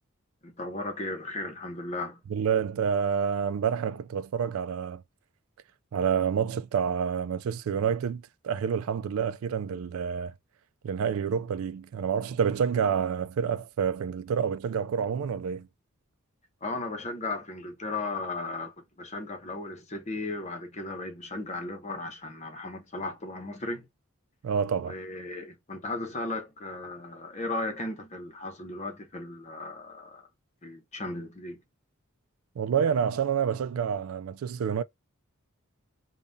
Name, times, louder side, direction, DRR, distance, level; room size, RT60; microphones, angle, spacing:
voice 1, 0.4-2.2 16.6-23.9 24.8-30.2 30.6-31.6, left 2 dB, 35° left, 0.9 m, -36 dB
voice 2, 2.3-5.0 5.9-10.3 10.8-15.7 24.4-24.9 32.6-34.8, right 7 dB, 80° right, 0.3 m, -28 dB
5.3 x 2.3 x 2.6 m
head